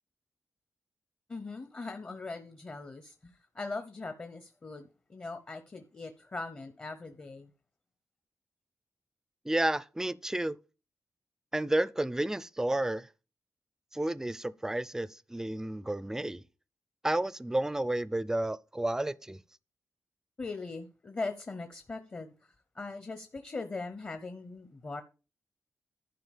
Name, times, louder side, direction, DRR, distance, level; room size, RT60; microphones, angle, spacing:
voice 1, 1.3-7.5 20.4-25.0, left 3 dB, 30° left, 0.8 m, -40 dB
voice 2, 9.4-10.6 11.5-13.1 13.9-16.4 17.0-19.4, right 1 dB, 10° right, 0.5 m, -31 dB
11.5 x 4.7 x 7.3 m
wide cardioid pair, 145°, 5 cm